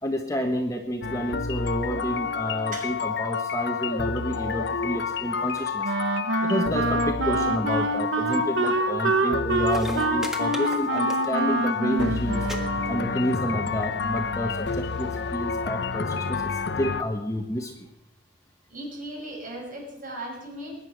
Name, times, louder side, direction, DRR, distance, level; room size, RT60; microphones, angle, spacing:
voice 1, 0.0-5.9 6.4-12.4 12.9-16.4 16.8-17.9, equal, 15° left, 3 dB, 1.2 m, -29 dB
sound 1, 1.0-17.0, left 5 dB, 55° left, 0.7 m, -29 dB
Wind instrument woodwind instrument, 5.8-13.2, right 2 dB, 70° right, 1.0 m, -26 dB
sound 2, 9.6-11.6 11.8-12.1 12.4-12.6 12.9-13.4 14.2-14.3, equal, ahead, 1.6 m, -38 dB
voice 2, 18.7-20.9, right 1 dB, 45° right, 0 dB, 5.7 m, -37 dB
21.0 x 9.8 x 6.0 m, 0.89 s
head